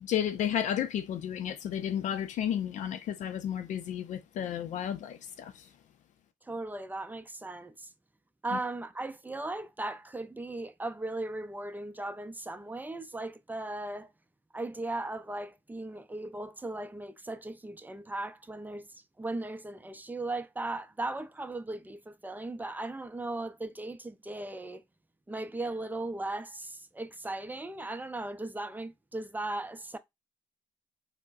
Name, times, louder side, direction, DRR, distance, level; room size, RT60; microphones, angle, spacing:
voice 1, 0.0-5.6 8.5-8.6, left 9 dB, 65° left, 0.4 m, -32 dB
voice 2, 6.4-7.9 8.4-14.1 14.5-24.8 25.3-30.0, right 2 dB, 15° right, 0.5 m, -37 dB
4.4 x 2.1 x 2.6 m
supercardioid pair, 65°, 14 cm